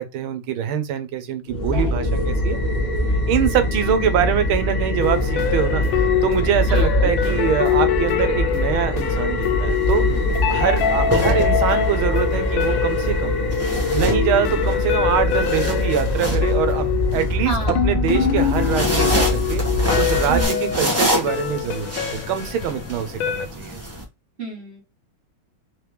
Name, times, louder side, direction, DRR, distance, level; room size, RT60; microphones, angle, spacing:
voice 1, 0.0-2.6 3.3-5.8 6.2-10.0 10.5-13.4 13.9-19.6 20.0-22.0 22.3-23.8, right 9 dB, 80° right, 1.5 m, -24 dB
sound 1, 1.5-20.4, left 1 dB, 30° left, 0.9 m, -23 dB
voice 2, 1.5-1.9 3.9-4.2 6.7-7.1 10.9-11.0 17.4-17.9 20.3-20.8 24.4-24.8, right 2 dB, 35° right, 1.3 m, -31 dB
sound 2, 5.0-23.5, left 10 dB, 75° left, 1.3 m, -25 dB
sound 3, 9.7-10.0 10.9-12.0 13.5-14.7 15.1-17.2 18.4-24.0, equal, 15° right, 0.6 m, -27 dB
4.1 x 3.3 x 3.1 m
omnidirectional pair, 2.3 m